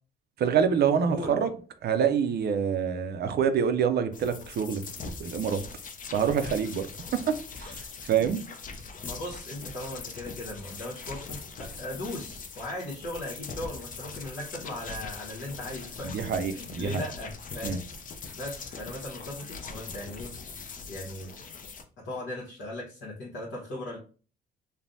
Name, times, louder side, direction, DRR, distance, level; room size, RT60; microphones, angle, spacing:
voice 1, 0.4-1.5 1.8-4.8 5.2-5.6 6.1-6.9 7.1-7.8 8.1-8.4 16.0-17.0 17.6-17.8, right 7 dB, 55° right, 0.4 m, -26 dB
voice 2, 1.1-1.5 9.0-17.8 18.3-20.3 20.9-21.3 22.0-24.0, left 1 dB, 75° left, 1.1 m, -38 dB
sound 1, 4.1-21.8, left 4 dB, 40° left, 0.5 m, -41 dB
3.3 x 2.1 x 2.6 m
cardioid pair, 90°, 20 cm